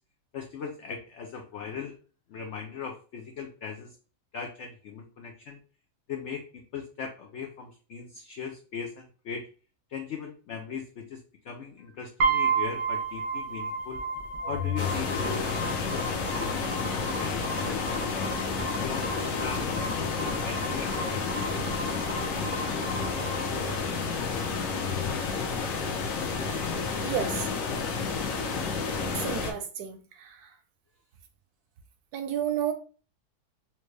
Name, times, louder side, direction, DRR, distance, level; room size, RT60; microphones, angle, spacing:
voice 1, 0.3-2.0 2.3-4.0 4.3-5.6 6.1-9.4 9.9-14.1 14.5-18.3 18.8-19.7 20.2-21.6, left 6 dB, 85° left, 0.6 m, -39 dB
sound 1, 12.2-24.2, right 4 dB, 90° right, 1.4 m, -33 dB
Organ, 14.4-25.4, left 9 dB, 35° left, 0.5 m, -41 dB
sound 2, 14.8-29.5, left 4 dB, 60° left, 1.0 m, -31 dB
voice 2, 27.0-27.5 29.1-30.4 32.1-32.7, right 9 dB, 75° right, 1.0 m, -31 dB
4.3 x 2.1 x 3.1 m
omnidirectional pair, 1.8 m